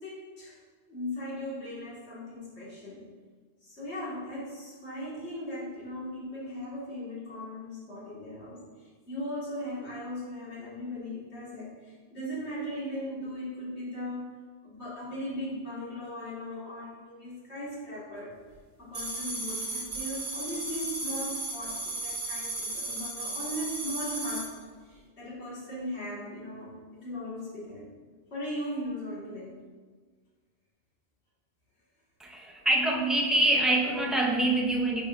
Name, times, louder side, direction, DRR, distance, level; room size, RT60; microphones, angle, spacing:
voice 1, 0.0-0.6 0.9-3.0 3.6-18.4 18.8-24.6 24.8-27.9 28.3-29.5, left 1 dB, 70° left, -7 dB, 2.2 m, -38 dB
sound 1, 18.9-24.5, right 2 dB, 65° right, 1.5 m, -35 dB
voice 2, 32.2-35.1, right 1 dB, ahead, -1 dB, 0.4 m, -25 dB
9.2 x 4.3 x 2.5 m, 1.5 s
omnidirectional pair, 1.2 m